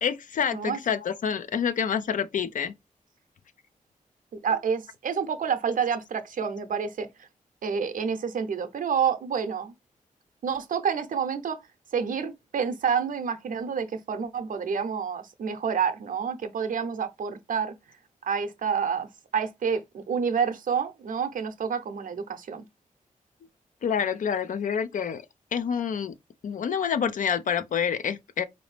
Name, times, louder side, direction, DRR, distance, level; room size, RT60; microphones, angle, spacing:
voice 1, 0.0-2.7 23.8-25.2 25.5-26.1 26.4-28.4, left 7 dB, 65° left, 0.4 m, -27 dB
voice 2, 4.4-7.1 7.6-9.7 10.4-11.6 11.9-17.7 18.2-19.1 19.3-22.6, right 6 dB, 70° right, 0.6 m, -28 dB
3.9 x 2.7 x 3.3 m
cardioid pair, 80°, 14 cm